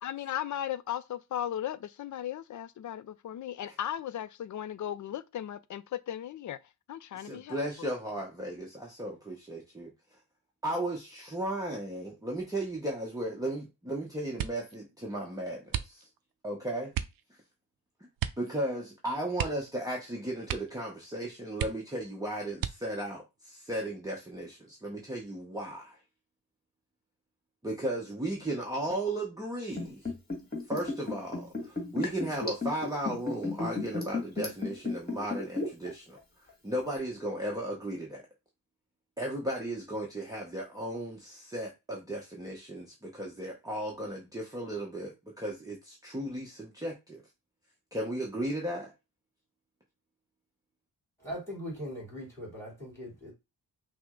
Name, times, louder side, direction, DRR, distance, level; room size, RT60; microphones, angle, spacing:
voice 1, 0.0-6.6 6.9-7.9, left 11 dB, 55° left, 0.4 m, -36 dB
voice 2, 7.1-9.9 10.6-16.1 16.4-16.9 18.4-26.0 27.6-30.1 30.7-36.2 36.6-38.2 39.2-47.2 47.9-48.9, right 1 dB, 10° right, 0.8 m, -35 dB
sound 1, 14.3-14.8 15.7-16.3 16.9-17.2 18.2-18.5 18.8-18.9 19.3-20.1 20.4-20.9 21.2-21.3 21.5-22.1 22.6-23.1 23.8-24.4 24.8-25.2, right 11 dB, 65° right, 0.5 m, -36 dB
Liquid, 29.7-35.9 36.2-36.3, left 3 dB, 25° left, 1.5 m, -33 dB
voice 3, 51.2-53.3, equal, 5° left, 2.9 m, -40 dB
5.7 x 2.1 x 3.7 m
wide cardioid pair, 130°, 37 cm